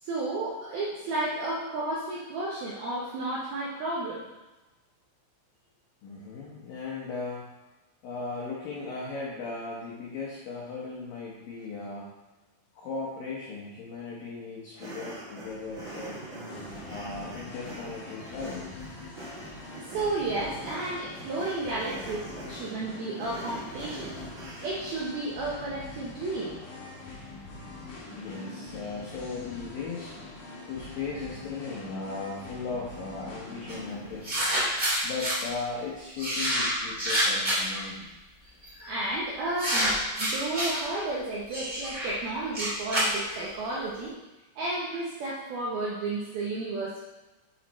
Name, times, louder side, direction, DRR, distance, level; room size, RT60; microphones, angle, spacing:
voice 1, 0.0-4.3 19.8-24.1 24.6-26.5 38.8-44.1 44.6-47.0, right 2 dB, 80° right, -6 dB, 2.2 m, -32 dB
voice 2, 6.0-7.5 8.0-12.1 12.7-16.3 16.9-18.7 27.6-27.7 28.1-30.1 30.7-34.4 35.0-38.1, left 4 dB, 90° left, -5 dB, 1.9 m, -37 dB
sound 1, 14.7-25.0, right 2 dB, 60° right, 1.2 m, -44 dB
Singing, 15.4-34.5, left 2 dB, 60° left, 2.3 m, -44 dB
sound 2, 33.7-33.8 34.2-35.4 36.2-37.8 38.6-38.9 39.6-40.8 41.5-43.7, equal, 20° right, 1.4 m, -28 dB
7.4 x 6.2 x 4.2 m, 1.1 s
omnidirectional pair, 5.8 m